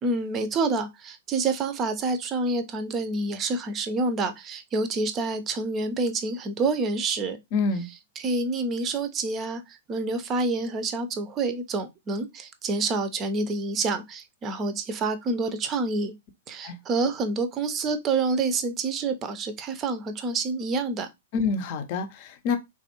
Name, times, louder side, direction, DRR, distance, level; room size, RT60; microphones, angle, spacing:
voice 1, 0.0-7.4 8.2-16.1 16.5-21.1, right 3 dB, 25° right, 0.6 m, -28 dB
voice 2, 7.5-7.9 16.6-16.8 21.3-22.6, left 4 dB, 45° left, 0.6 m, -27 dB
3.3 x 2.5 x 2.8 m
figure-of-eight pair, 110°, 0 cm